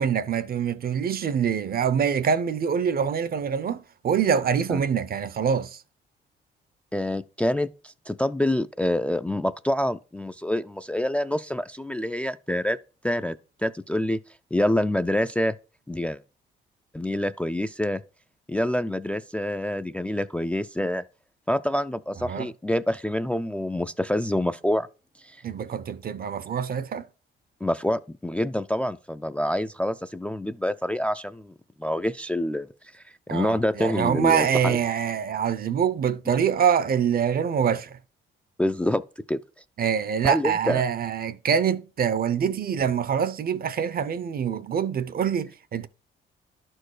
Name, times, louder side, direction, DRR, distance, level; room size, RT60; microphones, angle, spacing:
voice 1, 0.0-5.8 22.2-22.5 25.4-27.1 33.3-38.0 39.8-45.9, right 7 dB, 50° right, 0.7 m, -25 dB
voice 2, 6.9-12.8 13.0-13.4 13.6-14.2 14.5-15.6 15.9-16.2 16.9-18.0 18.5-21.0 21.5-24.9 25.2-25.4 27.6-31.5 31.8-32.7 32.9-33.0 33.3-34.8 38.6-39.0 39.3-39.4 40.2-40.8, left 1 dB, 5° left, 0.3 m, -26 dB
11.5 x 4.5 x 4.8 m
cardioid pair, 90°, 20 cm